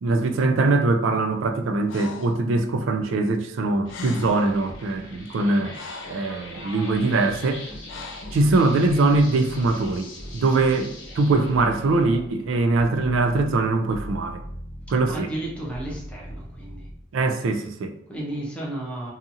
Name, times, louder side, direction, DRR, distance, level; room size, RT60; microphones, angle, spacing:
voice 1, 0.0-5.8 6.1-7.6 8.3-14.4 14.9-15.3 17.1-17.9, right 3 dB, 70° right, 0.4 m, -22 dB
Breathing, 1.9-2.4 3.6-3.7 3.9-4.6 5.3-6.3 7.9-8.4, left 3 dB, 65° left, 0.4 m, -38 dB
sound 1, 3.8-16.9, left 1 dB, 80° left, 1.0 m, -40 dB
voice 2, 15.1-16.9 18.1-19.1, right 1 dB, 5° left, 0.7 m, -33 dB
2.7 x 2.4 x 2.7 m
head